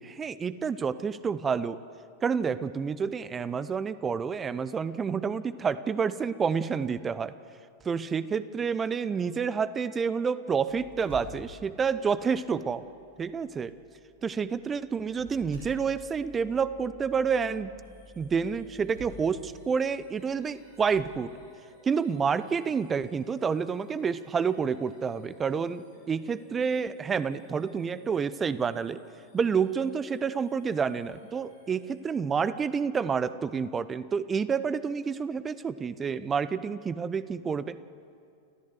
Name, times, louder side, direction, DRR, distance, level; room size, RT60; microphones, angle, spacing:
voice 1, 0.0-1.8 2.2-7.3 7.8-12.8 13.2-13.7 14.2-17.7 18.2-21.3 21.9-29.0 29.3-37.8, right 6 dB, 20° right, 15 dB, 0.7 m, -29 dB
sound 1, 10.7-21.1, equal, 60° right, 7.9 m, -51 dB
sound 2, 17.8-32.6, equal, 75° left, 6.7 m, -60 dB
30.0 x 14.0 x 8.0 m, 2.4 s
figure-of-eight pair, 90°, 0 cm